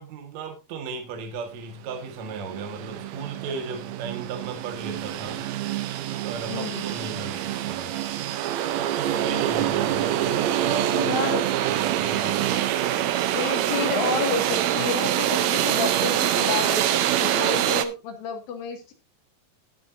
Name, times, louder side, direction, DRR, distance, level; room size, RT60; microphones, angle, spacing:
voice 1, 0.0-5.4 6.2-7.9 8.7-11.4 11.7-12.7, right 5 dB, 55° right, 4 dB, 2.7 m, -35 dB
sound 1, 1.9-2.0 2.2-17.8, right 12 dB, 85° right, 1.5 m, -25 dB
voice 2, 6.5-6.9 9.3-9.4 10.9-11.5 13.3-18.9, left 5 dB, 75° left, 4 dB, 3.7 m, -30 dB
19.0 x 7.1 x 2.6 m, 0.25 s
omnidirectional pair, 4.1 m